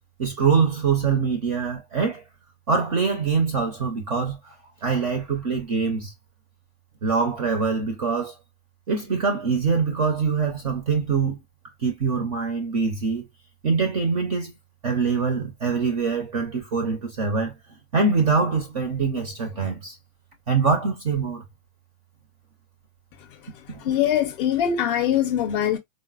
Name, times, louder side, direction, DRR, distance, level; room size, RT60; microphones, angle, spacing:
voice 1, 0.2-2.2 2.7-4.6 4.8-6.1 7.0-8.4 8.9-11.4 11.8-13.3 13.6-14.5 14.8-17.5 17.9-20.0 20.5-21.4 23.7-23.9, right 5 dB, 30° right, 0.4 m, -24 dB
voice 2, 23.8-25.8, left 10 dB, 40° left, 0.5 m, -22 dB
3.9 x 2.0 x 2.2 m
supercardioid pair, 170°, 44 cm